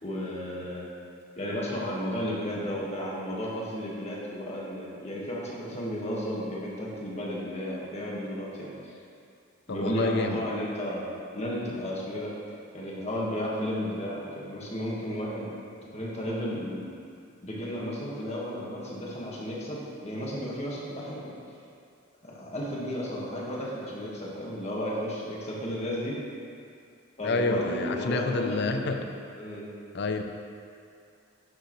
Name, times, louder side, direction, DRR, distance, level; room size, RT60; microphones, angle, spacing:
voice 1, 0.0-0.8 1.4-8.9 9.7-12.3 12.7-15.5 15.9-16.9 17.4-21.4 22.2-26.2 27.2-29.1 29.3-29.7, equal, 30° left, -5 dB, 1.6 m, -33 dB
voice 2, 9.7-10.4 27.2-29.0 29.9-30.2, left 3 dB, 55° left, 6 dB, 0.6 m, -28 dB
11.5 x 6.6 x 3.2 m, 2.4 s
head